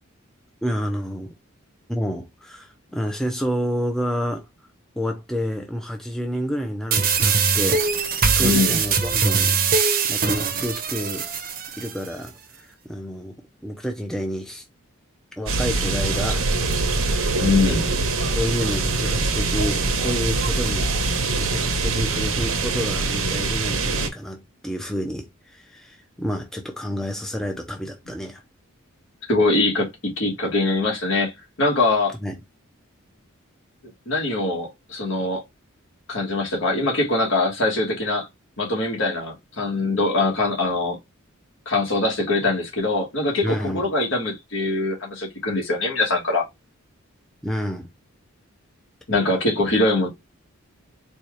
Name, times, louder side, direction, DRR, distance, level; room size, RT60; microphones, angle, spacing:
voice 1, 0.6-1.3 1.9-4.5 5.0-9.6 10.0-11.3 11.8-13.4 13.6-14.6 15.4-16.5 16.9-18.0 18.3-20.9 21.4-28.4 32.2-32.4 43.4-43.8 47.4-47.9, equal, ahead, 0.5 m, -29 dB
sound 1, 6.9-11.9, right 5 dB, 45° right, 0.7 m, -22 dB
voice 2, 8.4-8.8 17.4-17.9 29.3-31.3 31.6-32.2 34.1-35.4 36.1-38.3 38.6-41.0 41.6-46.4 49.1-50.1, left 2 dB, 60° left, 1.5 m, -22 dB
sound 2, 15.5-24.1, right 3 dB, 80° right, 0.9 m, -23 dB
4.4 x 2.3 x 3.1 m
head